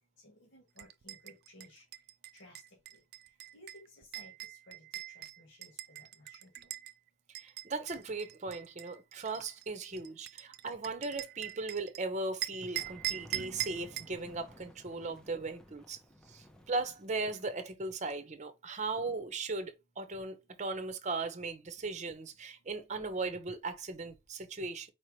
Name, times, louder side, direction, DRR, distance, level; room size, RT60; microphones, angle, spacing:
voice 1, 0.2-1.8 2.3-2.6 3.5-4.8 5.1-6.7, left 1 dB, 65° left, 1.7 m, -57 dB
sound 1, 0.8-6.9 7.3-12.0 12.4-14.2, right 14 dB, 55° right, 0.3 m, -42 dB
voice 2, 7.4-16.0 16.3-24.9, right 3 dB, 35° right, 0.8 m, -38 dB
sound 2, 12.6-17.6, equal, 5° left, 0.6 m, -56 dB
4.5 x 3.0 x 3.1 m
head